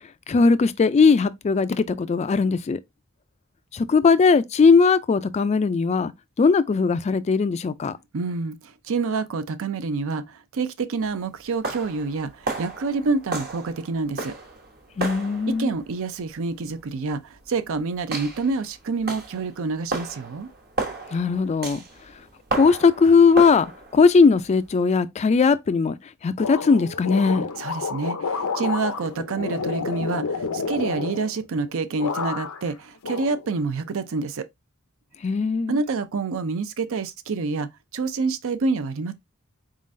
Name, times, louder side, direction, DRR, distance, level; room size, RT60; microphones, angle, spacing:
voice 1, 0.3-2.8 3.7-6.1 6.4-8.0 15.0-15.8 21.1-21.8 22.5-26.0 26.2-27.5 35.2-35.8, left 4 dB, 30° left, 0.3 m, -19 dB
voice 2, 8.1-14.4 15.5-20.5 27.6-34.5 35.7-39.1, right 4 dB, 65° right, 0.5 m, -27 dB
sound 1, 11.0-24.7, right 3 dB, 45° right, 1.0 m, -34 dB
sound 2, 26.4-31.7 32.0-32.7 33.0-33.9, left 4 dB, 85° left, 0.7 m, -30 dB
4.1 x 3.7 x 2.5 m
head